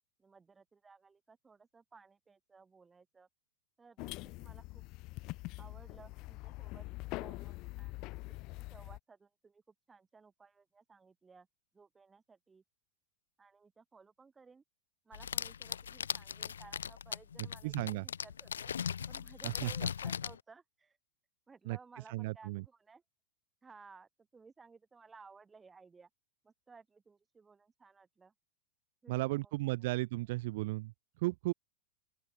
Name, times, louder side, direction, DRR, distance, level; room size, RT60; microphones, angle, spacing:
voice 1, 0.2-3.3 3.8-4.8 5.6-6.9 7.2-11.5 11.7-12.6 13.4-14.6 15.0-18.8 19.1-21.0 21.5-23.0 23.6-26.1 26.4-28.3 29.0-30.4, right 4 dB, 15° right, 6.6 m, -59 dB
sound 1, 4.0-9.0, left 22 dB, 40° left, 0.9 m, -44 dB
sound 2, 15.1-20.4, left 8 dB, 70° left, 1.1 m, -39 dB
voice 2, 17.6-18.0 19.4-19.7 21.7-21.8 22.1-22.6 29.1-30.9 31.2-31.5, right 20 dB, 50° right, 0.4 m, -34 dB
open air
figure-of-eight pair, 90°, 0 cm